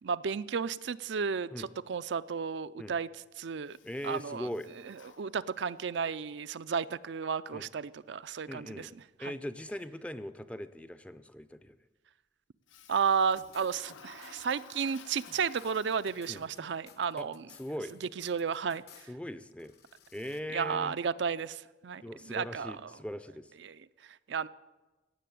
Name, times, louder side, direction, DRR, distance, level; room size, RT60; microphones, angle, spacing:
voice 1, 0.0-3.1 3.4-3.8 4.0-4.5 4.9-8.9 9.2-9.4 12.9-17.5 18.0-19.1 20.5-22.9 23.6-24.5, right 6 dB, 70° right, 13 dB, 0.4 m, -33 dB
Toilet flush, 3.7-5.9 12.7-16.8, left 6 dB, 90° left, 1.0 m, -54 dB
voice 2, 3.8-4.7 7.5-7.7 8.5-8.9 9.2-11.8 16.3-16.4 17.2-18.0 19.1-19.7 20.1-20.9 22.0-23.5, equal, 5° left, 12 dB, 0.5 m, -40 dB
sound 1, 13.4-14.4 14.8-19.1 19.5-20.4, left 6 dB, 55° left, 1.1 m, -58 dB
16.5 x 7.5 x 9.2 m, 1.2 s
head